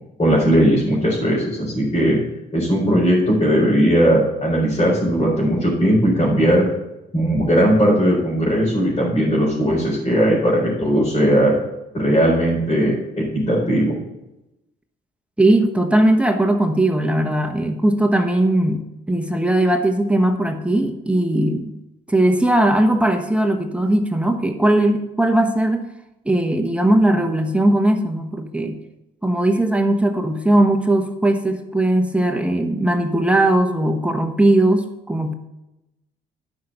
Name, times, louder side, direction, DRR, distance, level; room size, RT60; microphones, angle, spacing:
voice 1, 0.2-2.2 2.5-6.6 7.1-11.5 11.9-14.0, equal, 25° left, -6 dB, 4.3 m, -18 dB
voice 2, 15.4-21.7 22.1-25.9 26.2-28.8 29.2-35.3, right 1 dB, 5° right, 5 dB, 1.2 m, -18 dB
11.0 x 6.0 x 6.7 m, 0.94 s
cardioid pair, 90°, 20 cm